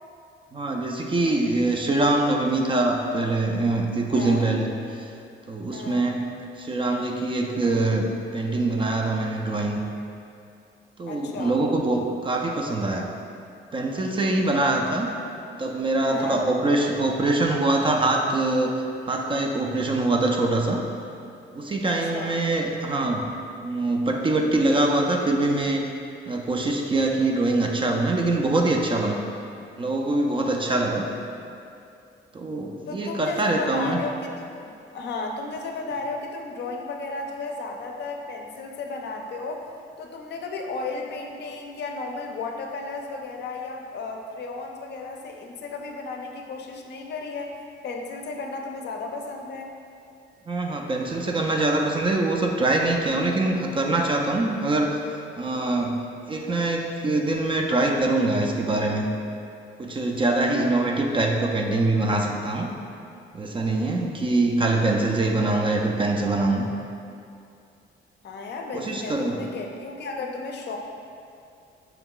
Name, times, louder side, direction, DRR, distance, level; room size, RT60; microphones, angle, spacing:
voice 1, 0.5-5.1 5.5-6.3 6.6-8.1 8.3-9.8 11.0-13.1 13.7-15.1 15.6-18.7 19.1-20.8 21.5-23.3 23.6-25.9 26.3-29.2 29.8-31.1 32.3-34.0 50.5-56.0 56.3-59.1 59.8-62.7 63.3-66.7 68.7-69.5, right 2 dB, 25° right, 1 dB, 0.3 m, -24 dB
voice 2, 4.1-4.5 5.7-6.1 11.1-11.6 16.1-16.4 21.8-22.4 32.9-39.7 40.0-47.6 47.8-49.7 68.2-70.8, left 3 dB, 60° left, 2 dB, 0.5 m, -34 dB
4.4 x 2.3 x 3.7 m, 2.5 s
cardioid pair, 90°, 20 cm